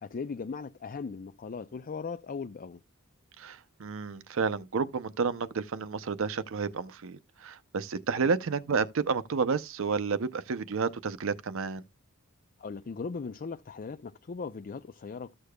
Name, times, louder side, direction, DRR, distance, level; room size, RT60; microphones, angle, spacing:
voice 1, 0.0-2.8 8.2-8.3 12.6-15.3, left 5 dB, 40° left, 0.4 m, -38 dB
voice 2, 3.4-11.8, right 5 dB, 65° right, 0.5 m, -31 dB
14.0 x 6.6 x 2.2 m
head